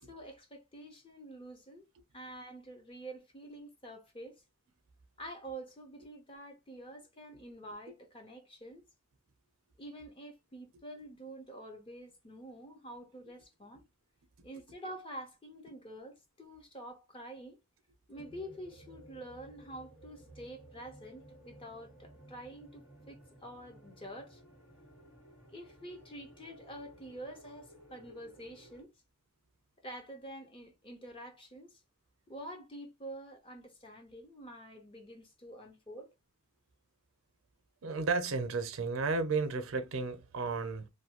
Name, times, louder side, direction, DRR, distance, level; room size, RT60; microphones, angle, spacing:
voice 1, 0.1-1.9 2.1-4.4 5.2-8.8 9.8-13.8 14.4-17.6 18.1-24.4 25.5-28.9 29.8-31.8 32.3-36.1, right 1 dB, 25° left, 0.6 m, -47 dB
sound 1, 18.1-28.8, right 1 dB, 80° left, 1.6 m, -56 dB
voice 2, 37.8-40.9, right 4 dB, 75° right, 0.6 m, -33 dB
2.6 x 2.2 x 2.8 m
head